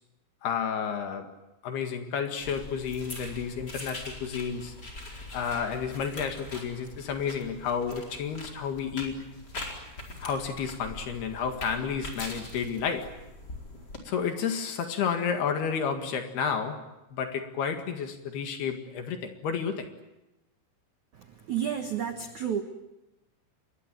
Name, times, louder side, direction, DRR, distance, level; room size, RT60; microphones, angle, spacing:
voice 1, 0.4-1.3 1.6-4.7 5.3-9.2 10.2-13.2 14.1-16.8 17.1-19.9, left 6 dB, 60° left, 6 dB, 3.5 m, -31 dB
sound 1, 2.4-14.0, left 2 dB, 20° left, 4.4 m, -42 dB
voice 2, 21.1-22.6, right 9 dB, 75° right, 6 dB, 1.7 m, -31 dB
28.0 x 22.0 x 9.1 m, 0.97 s
omnidirectional pair, 5.8 m